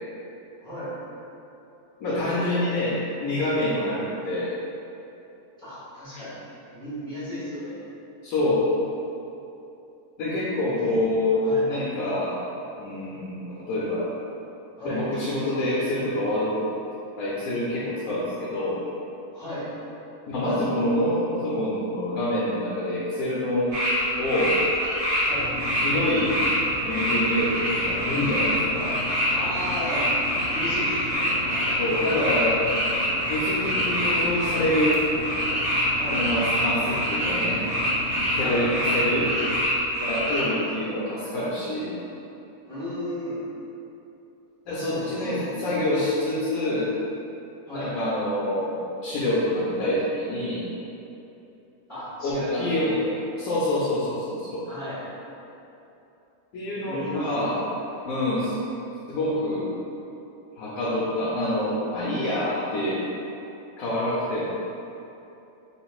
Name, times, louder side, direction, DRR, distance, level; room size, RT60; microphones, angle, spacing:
voice 1, 0.6-0.9 2.0-2.9 3.7-3.9 5.6-6.4 6.7-7.8 10.8-11.0 11.4-11.6 14.8-15.0 19.3-19.6 25.2-25.5 29.3-30.1 30.5-31.9 36.0-36.2 38.4-39.0 40.1-40.3 42.7-43.4 44.7-45.7 47.7-47.9 51.9-53.0 54.6-55.0 56.9-57.6 57.9-58.2, equal, 25° left, -14 dB, 1.3 m, -34 dB
voice 2, 2.0-4.5 8.2-8.7 10.2-11.4 11.7-12.4 12.8-14.1 14.8-16.6 17.2-18.8 20.3-23.7 24.2-24.6 25.7-26.3 26.8-29.0 31.8-32.6 33.3-35.0 36.1-37.6 38.3-39.3 39.9-41.9 44.7-46.9 47.7-50.6 52.2-52.9 53.4-54.7 56.5-57.6 58.0-58.6 59.1-59.7 60.6-63.0 63.8-64.4, left 1 dB, 75° left, -7 dB, 1.0 m, -26 dB
sound 1, 23.7-24.0 24.2-25.3 25.6-40.4, equal, 35° right, 1.5 m, -26 dB
Engine, 25.3-39.6, left 2 dB, 50° left, 0.8 m, -36 dB
3.9 x 3.6 x 2.3 m, 2.9 s
omnidirectional pair, 1.6 m